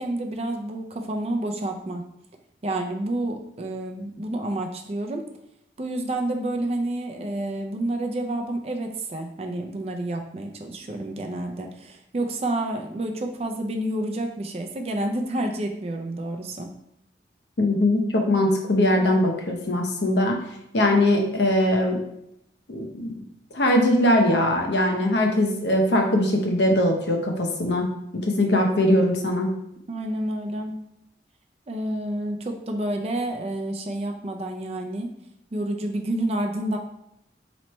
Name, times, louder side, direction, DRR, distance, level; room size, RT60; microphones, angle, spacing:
voice 1, 0.0-2.0 2.6-5.2 5.8-16.7 29.9-30.8 31.7-35.1 35.5-36.8, right 1 dB, 35° right, 3 dB, 0.4 m, -29 dB
voice 2, 17.6-20.4 20.7-22.0 22.7-23.1 23.5-27.9 28.2-29.5, left 1 dB, 80° left, 2 dB, 0.7 m, -21 dB
4.3 x 3.1 x 3.0 m, 0.80 s
head